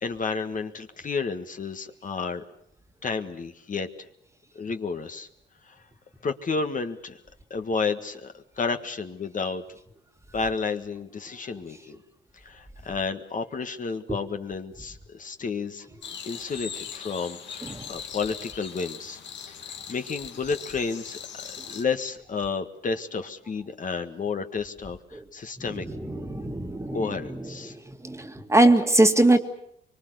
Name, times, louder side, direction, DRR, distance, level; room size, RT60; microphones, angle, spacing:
voice 1, 0.0-2.4 3.0-3.9 4.5-5.3 5.7-5.8 6.2-7.2 7.5-9.6 10.3-12.0 12.4-15.9 16.2-19.2 19.5-25.8 26.9-27.7, left 4 dB, 40° left, 7 dB, 1.7 m, -31 dB
sound 1, 16.0-21.8, left 7 dB, 65° left, 2.3 m, -40 dB
voice 2, 25.9-27.0 28.0-29.4, right 2 dB, 15° right, 7 dB, 2.0 m, -21 dB
24.0 x 23.5 x 8.1 m, 0.72 s
cardioid pair, 90°, 20 cm